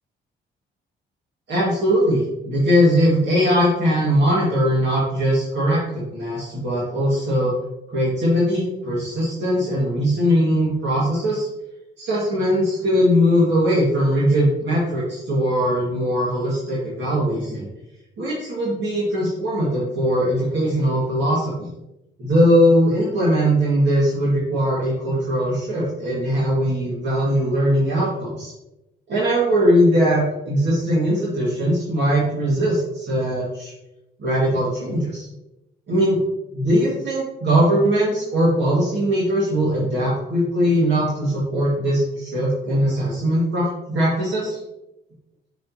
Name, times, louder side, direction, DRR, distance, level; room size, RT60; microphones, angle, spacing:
voice 1, 1.5-7.5 7.9-11.5 12.0-17.7 18.2-21.7 22.2-28.5 29.1-33.7 34.2-35.3 35.9-36.2 36.5-44.6, equal, 65° right, -6 dB, 2.1 m, -20 dB
6.5 x 5.2 x 2.9 m, 0.92 s
cardioid pair, 90°, 20 cm